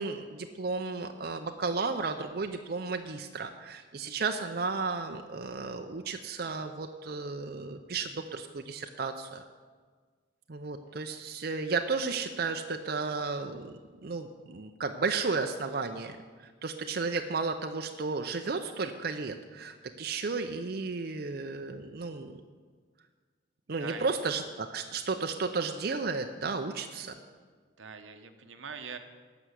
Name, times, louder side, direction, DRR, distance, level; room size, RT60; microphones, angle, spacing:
voice 1, 0.0-9.4 10.5-22.4 23.7-27.1, right 4 dB, 55° right, 6 dB, 0.6 m, -33 dB
voice 2, 23.8-24.1 27.8-29.0, right 5 dB, 90° right, 8 dB, 1.0 m, -42 dB
12.0 x 6.0 x 8.2 m, 1.5 s
head